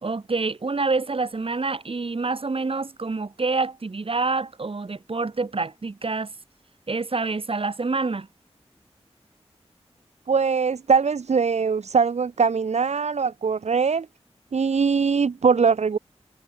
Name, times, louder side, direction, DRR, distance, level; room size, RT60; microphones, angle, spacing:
voice 1, 0.0-6.3 6.9-8.3, right 3 dB, 55° right, 3.0 m, -27 dB
voice 2, 10.3-14.1 14.5-16.0, right 5 dB, 85° right, 1.2 m, -21 dB
wide cardioid pair, 60°, 11 cm